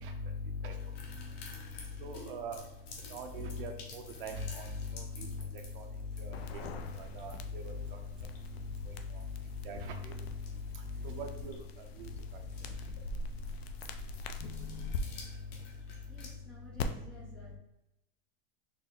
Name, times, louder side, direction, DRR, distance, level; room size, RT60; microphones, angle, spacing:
sound 1, 0.8-16.3, left 3 dB, 30° left, 0.7 m, -53 dB
voice 1, 2.0-2.6 3.1-5.3 5.8-5.9 6.2-6.6 7.1-7.8 9.6-10.2 11.0-11.5, left 1 dB, 60° right, 5 dB, 0.7 m, -40 dB
sound 2, 6.3-15.0 16.8-16.9, left 4 dB, 80° left, 0.6 m, -43 dB
voice 2, 16.1-17.6, left 2 dB, 5° left, -8 dB, 0.4 m, -53 dB
4.3 x 2.6 x 3.6 m, 0.88 s
supercardioid pair, 170°, 31 cm